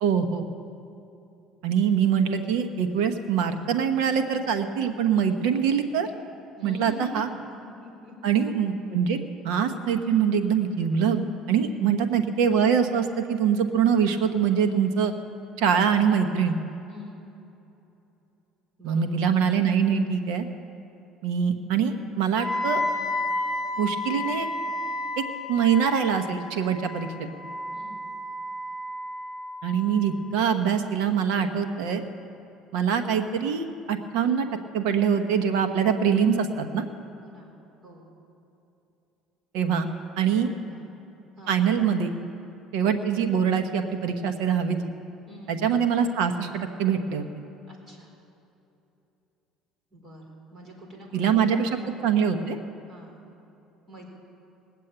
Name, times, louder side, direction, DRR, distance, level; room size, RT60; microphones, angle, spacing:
voice 1, 0.0-0.4 1.6-6.1 6.6-7.3 8.2-9.2 9.4-11.2 11.5-15.1 15.6-16.6 18.8-20.5 21.2-22.8 23.8-24.5 25.5-27.3 29.6-32.0 32.7-34.5 34.7-36.8 39.5-39.9 40.2-40.5 41.5-42.1 42.7-44.9 45.5-47.2 51.1-51.7 52.0-52.6, right 7 dB, 80° right, 7 dB, 1.2 m, -24 dB
voice 2, 6.6-8.6 11.7-12.0 16.9-17.3 18.8-19.2 27.7-28.0 37.2-37.5 37.8-38.1 40.4-40.8 41.4-41.6 45.3-45.7 47.7-48.1 49.9-52.1 52.9-53.2 53.9-54.1, equal, 35° right, 0 dB, 4.3 m, -45 dB
Wind instrument woodwind instrument, 22.4-30.3, left 2 dB, 20° left, 3.9 m, -32 dB
20.0 x 7.5 x 8.9 m, 2.9 s
cardioid pair, 115°, 0 cm